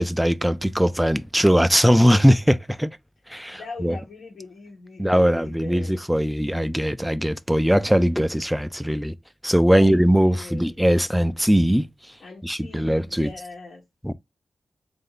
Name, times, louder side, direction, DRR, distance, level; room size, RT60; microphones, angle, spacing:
voice 1, 0.0-2.9 3.3-4.0 5.0-9.1 9.4-11.9 12.4-13.3 14.0-14.1, equal, ahead, 0.3 m, -20 dB
voice 2, 3.5-6.0 9.7-10.7 12.2-13.8, left 3 dB, 75° left, 1.3 m, -40 dB
3.8 x 2.6 x 3.9 m
wide cardioid pair, 120°, 0 cm